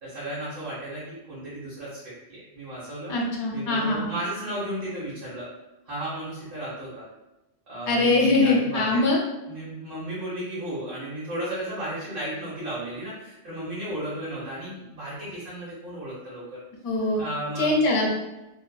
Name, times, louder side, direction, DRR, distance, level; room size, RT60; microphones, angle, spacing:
voice 1, 0.0-3.1 3.5-5.5 5.8-7.0 7.7-9.0 9.5-16.6 17.2-17.8, right 1 dB, 60° right, -10 dB, 1.1 m, -34 dB
voice 2, 3.1-4.1 7.9-9.2 16.8-17.2 17.6-18.1, left 2 dB, 80° left, -1 dB, 1.0 m, -22 dB
2.7 x 2.4 x 2.2 m, 0.98 s
omnidirectional pair, 1.1 m